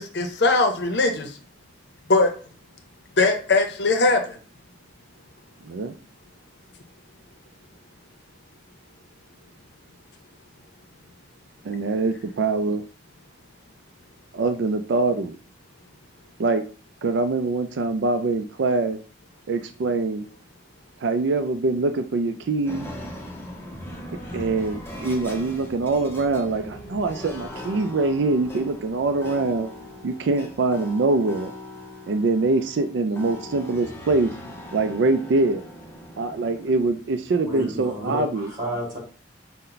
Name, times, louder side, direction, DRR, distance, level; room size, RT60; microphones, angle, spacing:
voice 1, 0.0-1.4 2.1-2.3 3.2-4.4, left 3 dB, 65° left, 0.6 m, -20 dB
voice 2, 5.6-5.9 11.6-12.8 14.3-15.4 16.4-16.6 17.0-19.0 19.5-20.2 21.0-22.9 24.3-29.7 30.0-31.5 32.1-34.3 34.7-35.6 36.2-38.5, right 3 dB, 70° right, 0.4 m, -24 dB
sound 1, 22.7-36.9, left 1 dB, 15° left, 0.7 m, -40 dB
voice 3, 37.4-39.0, equal, 20° right, 2.4 m, -31 dB
5.5 x 2.1 x 3.9 m
head